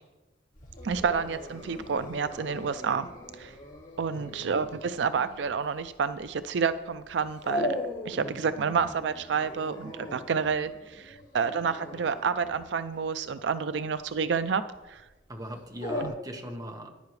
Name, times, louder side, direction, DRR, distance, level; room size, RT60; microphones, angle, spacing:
Dog, 0.5-16.1, left 1 dB, 50° left, 3.4 m, -40 dB
voice 1, 0.8-3.1 3.4-3.5 4.0-14.6 14.9-15.0 16.0-16.1, right 6 dB, 80° right, 12 dB, 0.4 m, -29 dB
voice 2, 15.3-16.9, equal, 20° right, 2 dB, 1.3 m, -39 dB
14.5 x 10.5 x 3.2 m, 1.1 s
head